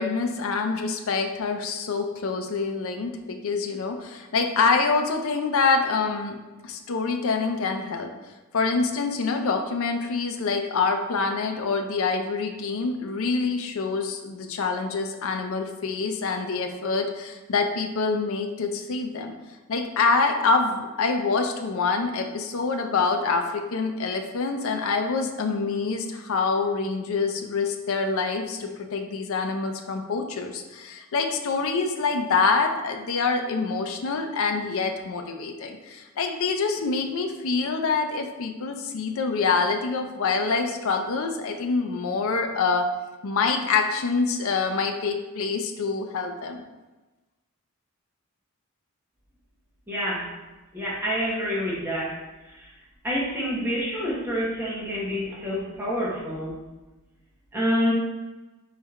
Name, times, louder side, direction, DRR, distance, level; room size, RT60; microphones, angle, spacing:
voice 1, 0.0-6.4 6.6-8.1 8.5-19.3 19.7-42.8 43.2-46.6, left 4 dB, 65° left, 5 dB, 0.5 m, -26 dB
voice 2, 49.9-50.3 50.7-52.2 52.6-52.7 53.0-56.5 57.5-57.9, equal, 10° right, -6 dB, 1.0 m, -27 dB
4.2 x 3.2 x 3.6 m, 1.1 s
head